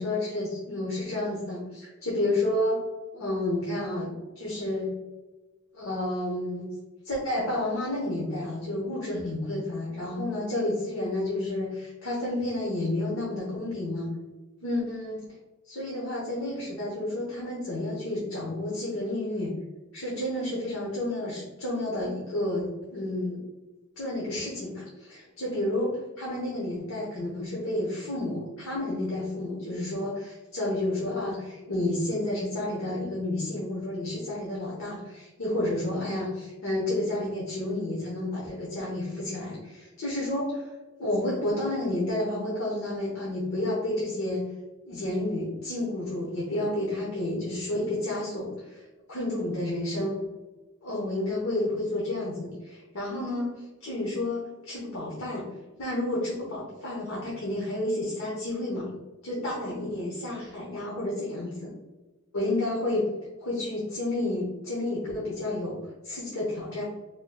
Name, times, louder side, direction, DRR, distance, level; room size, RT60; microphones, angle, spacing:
voice 1, 0.0-2.8 3.1-4.9 5.7-6.7 7.0-14.1 14.6-15.2 15.6-19.6 19.9-22.6 22.9-23.4 24.0-40.7 41.0-44.5 44.8-48.8 49.1-50.2 50.8-55.4 55.8-58.9 59.2-61.7 62.3-63.1 63.4-65.8 66.0-66.8, left 1 dB, 80° left, -5 dB, 1.0 m, -30 dB
4.5 x 3.0 x 2.2 m, 1.2 s
head